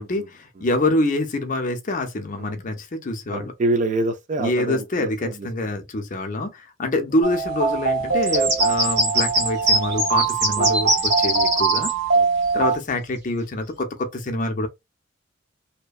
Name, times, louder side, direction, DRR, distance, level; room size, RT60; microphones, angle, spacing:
voice 1, 0.0-3.5 4.4-11.9 12.5-14.7, left 2 dB, 40° left, 0.5 m, -26 dB
voice 2, 3.3-5.5 10.6-10.8 11.2-11.4 12.1-12.3, right 2 dB, 40° right, 0.4 m, -26 dB
sound 1, 7.2-12.8, right 5 dB, 85° right, 1.1 m, -23 dB
sound 2, 8.2-11.9, right 1 dB, 60° right, 1.3 m, -21 dB
2.7 x 2.1 x 2.3 m
head